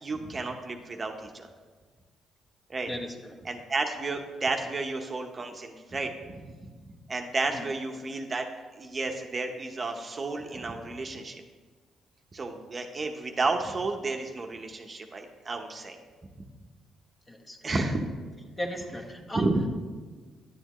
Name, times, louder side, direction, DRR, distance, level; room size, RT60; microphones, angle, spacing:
voice 1, 0.0-1.5 2.7-2.9 3.4-6.7 7.1-8.5 8.8-11.4 12.3-16.0 16.4-16.5 17.6-18.1 19.3-19.6, right 3 dB, 35° right, 4 dB, 0.8 m, -32 dB
voice 2, 2.9-3.4 7.5-8.0 17.3-17.7 18.6-19.5, left 1 dB, 20° left, 1 dB, 1.1 m, -37 dB
10.5 x 7.9 x 3.0 m, 1.4 s
cardioid pair, 90°, 0 cm